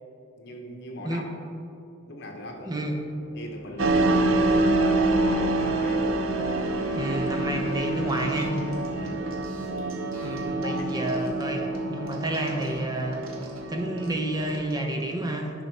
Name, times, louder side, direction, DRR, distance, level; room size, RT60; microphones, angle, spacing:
voice 1, 0.4-1.2 2.1-2.8 3.3-6.1 8.9-9.3 10.3-10.9, left 1 dB, 55° left, 2 dB, 1.0 m, -39 dB
sound 1, 2.4-10.2, left 3 dB, 85° left, 0.7 m, -45 dB
sound 2, 3.8-14.6, right 2 dB, 70° right, 0.5 m, -26 dB
voice 2, 6.9-8.6 10.2-13.2 13.7-15.5, right 1 dB, 20° right, 2 dB, 0.6 m, -30 dB
sound 3, 8.1-14.8, right 2 dB, 85° right, 1.4 m, -50 dB
10.5 x 4.2 x 4.5 m, 2.6 s
head